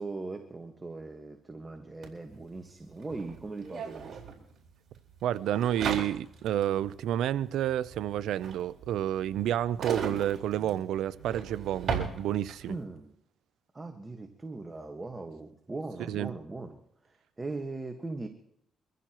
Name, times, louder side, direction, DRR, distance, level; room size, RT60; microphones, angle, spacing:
voice 1, 0.0-4.2 12.7-13.1 13.7-18.3, right 3 dB, 20° right, 1.5 m, -40 dB
sound 1, 2.0-2.1 2.3-12.8, right 6 dB, 50° right, 4.3 m, -38 dB
voice 2, 5.2-12.8 16.1-16.3, right 11 dB, 80° right, 0.5 m, -30 dB
24.5 x 15.0 x 3.0 m
cardioid pair, 90°, 0 cm